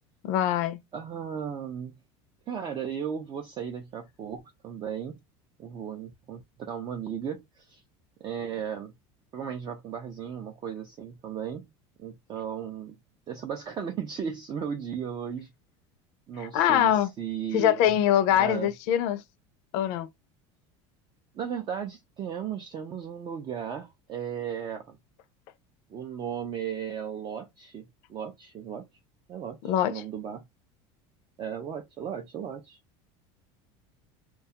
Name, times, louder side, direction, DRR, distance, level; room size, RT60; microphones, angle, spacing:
voice 1, 0.2-0.8 16.5-17.1 17.5-19.2 19.7-20.1 29.6-29.9, left 11 dB, 65° left, 0.5 m, -23 dB
voice 2, 0.9-2.0 2.5-5.2 5.6-7.8 8.2-8.9 9.3-11.7 12.0-13.0 13.3-15.5 16.3-17.9 18.3-18.7 21.3-25.0 25.9-28.9 29.3-30.4 31.4-32.8, right 8 dB, 30° right, 0.4 m, -36 dB
2.4 x 2.2 x 2.8 m
supercardioid pair, 125°, 14 cm